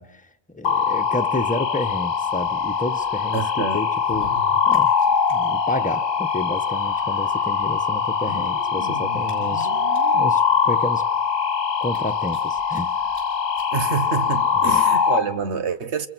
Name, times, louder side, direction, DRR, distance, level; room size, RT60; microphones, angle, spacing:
voice 1, 0.0-4.3 4.7-4.9 5.3-9.7 10.1-11.1 11.8-13.0 14.5-14.8, left 2 dB, 10° left, 1.1 m, -30 dB
sound 1, 0.6-15.2, left 6 dB, 80° left, 1.4 m, -22 dB
voice 2, 3.3-3.8 13.7-16.1, right 6 dB, 85° right, 1.5 m, -27 dB
sound 2, 4.0-5.3 5.6-5.7 5.9-6.0 7.0-7.1 8.0-10.3 10.9-11.0 11.3-11.4 11.8-12.8 13.1-13.2 13.6-13.7 14.5-14.6, left 2 dB, 55° right, 8.3 m, -39 dB
29.5 x 27.5 x 6.2 m
omnidirectional pair, 1.1 m